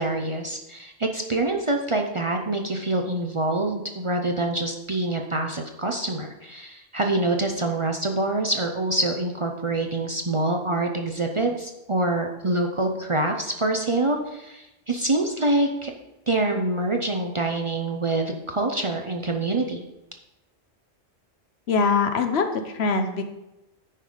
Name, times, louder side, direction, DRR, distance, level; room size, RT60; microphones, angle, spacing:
voice 1, 0.0-15.9 16.3-19.8, right 2 dB, 35° right, 3 dB, 0.6 m, -25 dB
voice 2, 21.7-23.2, left 4 dB, 70° left, 6 dB, 1.1 m, -23 dB
9.8 x 5.5 x 5.0 m, 0.95 s
omnidirectional pair, 1.1 m